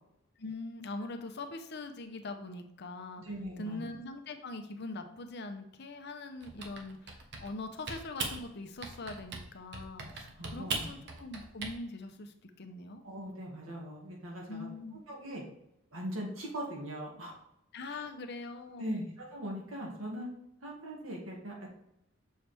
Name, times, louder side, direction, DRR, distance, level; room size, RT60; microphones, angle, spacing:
voice 1, 0.4-3.2 3.6-13.0 14.5-15.0 17.7-19.0, left 2 dB, 55° left, 7 dB, 0.7 m, -42 dB
voice 2, 3.2-3.8 10.0-10.8 13.0-14.7 15.1-15.4 15.9-17.3 17.9-18.0 18.8-20.3 20.6-21.7, equal, 85° right, -2 dB, 2.0 m, -40 dB
Typing, 6.4-7.6 7.9-8.4 8.8-9.5 9.7-11.7, right 3 dB, 60° right, 1.0 m, -39 dB
6.6 x 4.4 x 3.4 m, 0.81 s
head